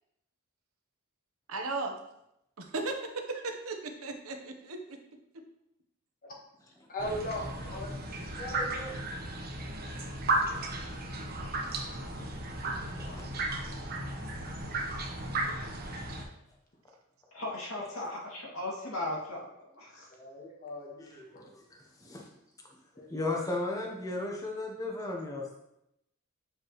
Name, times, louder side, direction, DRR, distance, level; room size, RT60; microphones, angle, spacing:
voice 1, 1.5-2.0 2.6-5.0, right 3 dB, 85° right, 4 dB, 0.9 m, -36 dB
voice 2, 6.9-7.9 8.4-8.9 9.8-9.9 10.5-10.7 13.0-13.2 20.2-21.5 22.9-23.1, left 1 dB, 40° left, -2 dB, 1.5 m, -39 dB
sound 1, 7.0-16.2, right 2 dB, 45° right, 1.0 m, -35 dB
voice 3, 8.8-9.2 13.1-13.2 21.0-22.3 23.1-25.6, left 2 dB, 15° left, 0 dB, 0.8 m, -36 dB
voice 4, 17.3-20.1, left 1 dB, 80° left, -4 dB, 2.2 m, -37 dB
8.1 x 5.1 x 3.1 m, 0.83 s
head